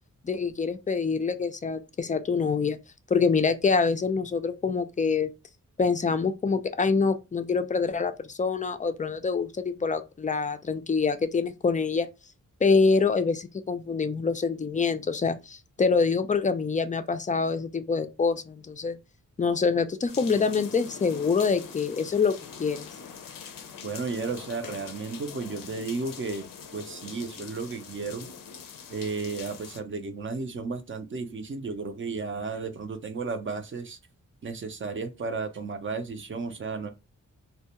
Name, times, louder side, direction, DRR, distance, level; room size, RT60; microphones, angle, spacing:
voice 1, 0.2-2.8 3.1-5.3 5.8-12.1 12.6-19.0 19.4-22.9, left 5 dB, 25° left, 0.3 m, -25 dB
sound 1, 20.1-29.8, left 6 dB, 85° left, 0.5 m, -43 dB
voice 2, 23.8-28.3 28.9-34.0 34.4-36.9, right 4 dB, 40° right, 0.5 m, -33 dB
2.2 x 2.2 x 2.9 m
wide cardioid pair, 80°, 33 cm